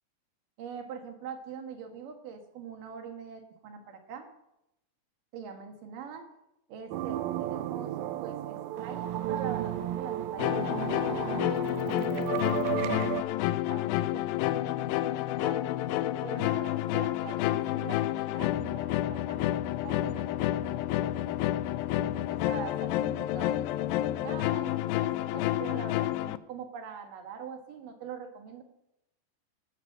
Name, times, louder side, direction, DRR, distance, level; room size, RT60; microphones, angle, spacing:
voice 1, 0.6-4.3 5.3-6.3 6.7-7.9 8.2-13.3 13.7-15.7 16.2-21.4 22.0-28.6, right 6 dB, 70° right, 5 dB, 3.1 m, -44 dB
sound 1, 6.9-13.2, right 12 dB, 85° right, 2.4 m, -33 dB
sound 2, 10.4-26.4, left 14 dB, 80° left, 2.2 m, -29 dB
18.5 x 6.2 x 6.6 m, 0.86 s
omnidirectional pair, 4.2 m